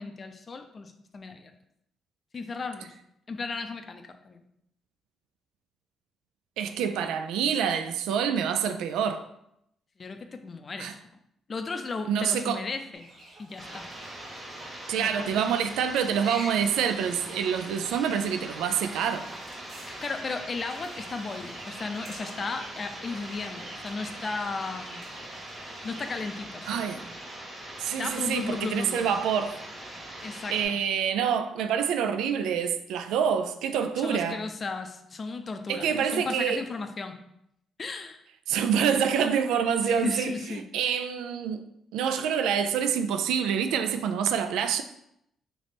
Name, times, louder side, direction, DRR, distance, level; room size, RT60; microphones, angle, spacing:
voice 1, 0.0-1.5 2.3-2.9 3.3-4.4 10.0-11.0 11.5-13.1 13.4-13.9 15.0-15.3 19.9-25.1 25.8-27.0 28.0-29.1 30.2-30.8 34.0-37.2 37.8-38.2 39.8-40.6, left 4 dB, 40° left, 0.5 m, -35 dB
voice 2, 6.6-9.3 10.8-10.9 12.1-12.6 14.9-19.3 26.7-27.0 27.8-29.6 30.5-34.4 35.7-36.6 38.5-40.3 40.7-41.6 41.9-44.8, right 7 dB, 90° right, 0.3 m, -26 dB
sound 1, 12.9-26.4, right 1 dB, 60° right, 1.2 m, -48 dB
sound 2, 13.6-30.6, right 1 dB, 30° right, 1.5 m, -42 dB
3.4 x 3.1 x 4.0 m
cardioid pair, 90°, 0 cm